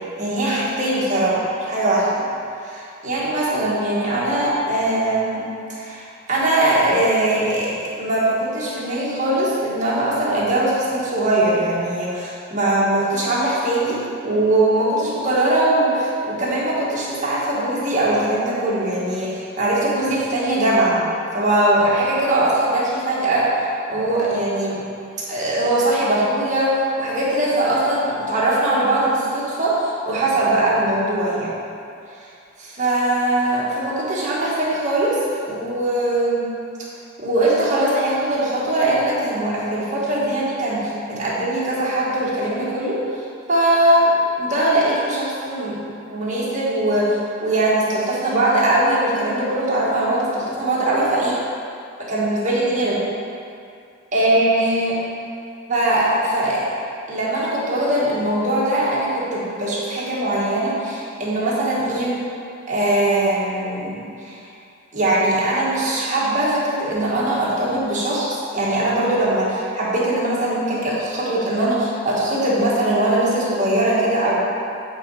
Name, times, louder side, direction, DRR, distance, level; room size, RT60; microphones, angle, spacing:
voice 1, 0.2-2.2 2.6-21.0 21.3-24.8 25.3-31.5 32.2-32.3 32.6-36.5 37.2-43.2 43.5-45.8 46.1-51.4 52.0-53.0 54.1-55.0 55.7-56.7 57.1-62.2 62.7-64.4 64.9-74.4, right 1 dB, 35° right, -7 dB, 1.6 m, -21 dB
8.3 x 4.1 x 4.7 m, 2.5 s
head